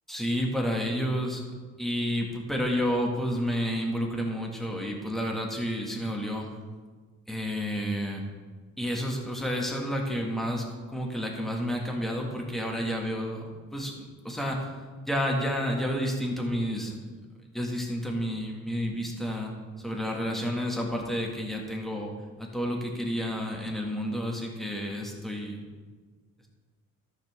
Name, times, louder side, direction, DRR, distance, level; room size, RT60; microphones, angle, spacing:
voice 1, 0.1-1.4 1.8-6.5 7.3-8.2 8.8-10.6 10.9-13.4 13.7-14.7 15.0-17.0 17.5-19.5 19.8-22.1 22.4-25.6, equal, ahead, 0 dB, 1.9 m, -30 dB
13.5 x 5.8 x 3.6 m, 1.4 s
cardioid pair, 90°, 30 cm